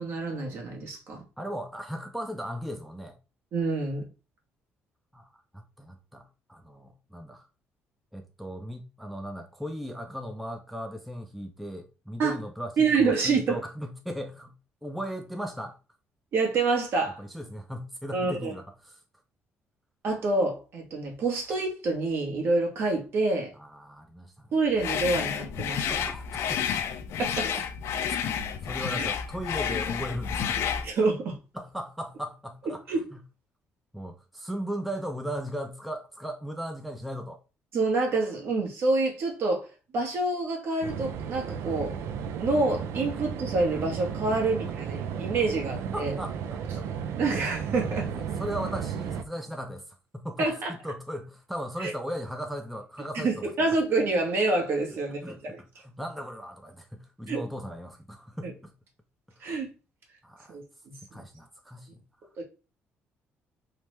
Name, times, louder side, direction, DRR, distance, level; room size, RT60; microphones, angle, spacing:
voice 1, 0.0-1.2 3.5-4.0 12.2-12.3 12.8-13.6 16.3-17.2 18.1-18.5 20.0-23.5 24.5-25.9 27.2-27.5 29.0-29.1 30.8-31.4 32.9-33.0 37.7-39.7 39.9-42.0 42.4-46.1 47.2-48.1 50.4-50.7 51.8-51.9 53.2-55.6 57.3-57.4 58.4-58.5 59.4-59.7 60.5-60.9 62.4-62.5, right 3 dB, 60° right, 1.0 m, -27 dB
voice 2, 1.4-3.2 5.1-7.5 8.1-14.5 14.8-15.8 17.2-19.0 23.5-24.6 25.8-26.8 27.5-27.6 28.1-30.8 31.5-32.8 33.1-33.2 33.9-37.4 45.9-46.8 48.1-53.5 54.9-58.7 59.4-59.5 60.2-60.6 61.1-62.0, equal, ahead, 0.4 m, -37 dB
sound 1, 24.8-30.9, left 8 dB, 70° left, 0.3 m, -30 dB
sound 2, 40.8-49.2, right 7 dB, 75° right, 0.3 m, -34 dB
3.1 x 2.0 x 3.1 m
cardioid pair, 105°, 5 cm